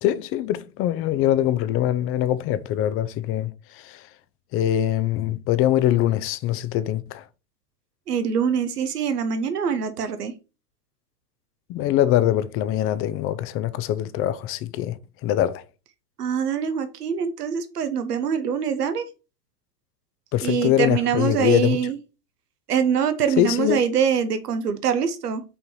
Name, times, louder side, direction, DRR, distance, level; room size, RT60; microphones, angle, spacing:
voice 1, 0.0-4.1 4.5-7.2 11.7-15.6 20.3-21.8 23.4-23.8, left 12 dB, 30° left, 0.5 m, -23 dB
voice 2, 8.1-10.3 16.2-19.0 20.4-22.0 22.7-25.4, right 7 dB, 85° right, 1.1 m, -24 dB
5.7 x 3.9 x 4.6 m
hypercardioid pair, 105°, 45 cm